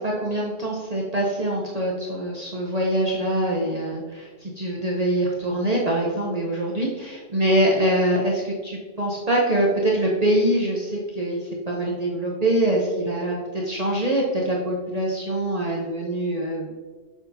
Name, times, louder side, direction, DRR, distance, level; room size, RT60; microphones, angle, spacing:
voice 1, 0.0-16.7, right 1 dB, 40° right, -3 dB, 0.8 m, -24 dB
6.8 x 5.7 x 2.7 m, 1.4 s
omnidirectional pair, 1.2 m